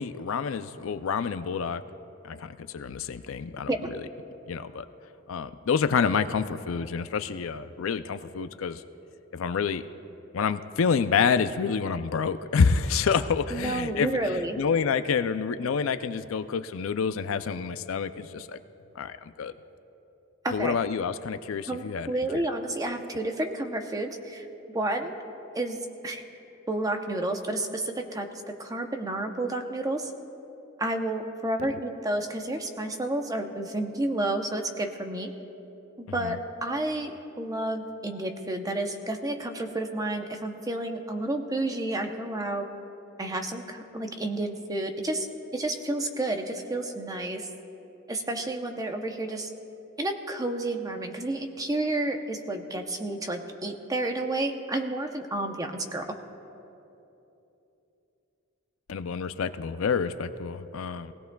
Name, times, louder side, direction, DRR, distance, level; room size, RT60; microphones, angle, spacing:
voice 1, 0.0-1.8 2.2-3.7 4.5-4.9 5.3-8.8 9.3-9.8 10.3-14.2 14.6-18.6 19.0-19.5 20.5-22.1 22.3-22.4 31.6-31.7 36.2-36.4 58.9-61.1, left 6 dB, 65° left, 11 dB, 0.4 m, -28 dB
voice 2, 13.5-14.6 20.4-20.8 21.7-24.5 24.7-25.1 25.5-26.2 26.7-30.1 30.8-35.3 36.0-42.7 43.2-45.3 45.5-47.5 48.1-49.5 50.0-56.1, right 2 dB, 15° right, 5 dB, 0.7 m, -30 dB
22.0 x 16.5 x 2.3 m, 3.0 s
head